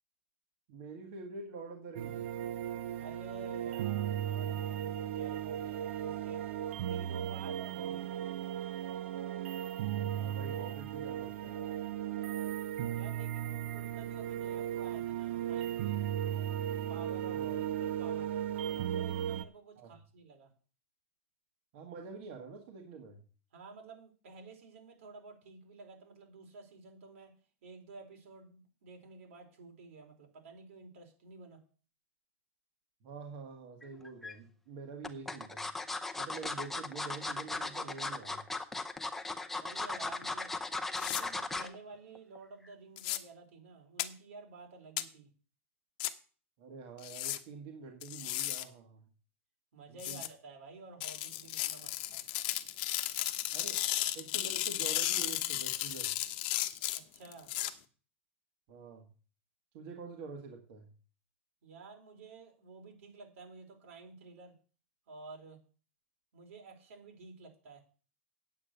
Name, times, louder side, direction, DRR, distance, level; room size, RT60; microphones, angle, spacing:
voice 1, 0.7-2.2 10.2-11.7 17.3-17.6 19.8-19.9 21.7-23.2 33.0-35.7 36.2-38.5 46.6-49.0 49.9-50.2 53.5-53.8 54.1-56.2 58.7-59.1 59.7-60.9, right 4 dB, 45° right, 2 dB, 1.8 m, -46 dB
sound 1, 2.0-19.4, right 11 dB, 65° right, 0.8 m, -36 dB
voice 2, 2.9-6.4 6.9-8.0 12.9-16.0 16.9-18.3 18.8-20.5 23.5-27.4 27.6-31.6 39.5-40.5 41.0-45.3 49.7-52.2 56.9-57.5 61.6-64.5 65.1-65.6 66.3-67.8, right 3 dB, 80° right, 2 dB, 4.5 m, -52 dB
sound 2, 33.8-34.3 35.0-41.7 42.1-42.4 42.7-42.8, left 3 dB, 5° left, 0.7 m, -37 dB
sound 3, 41.0-41.2 43.0-43.2 44.0-44.1 45.0-45.1 46.0-46.1 47.0-47.4 48.0-48.6 50.0-50.3 51.0-57.7, left 15 dB, 45° left, 0.9 m, -34 dB
8.8 x 8.5 x 6.8 m, 0.39 s
supercardioid pair, 170°, 7 cm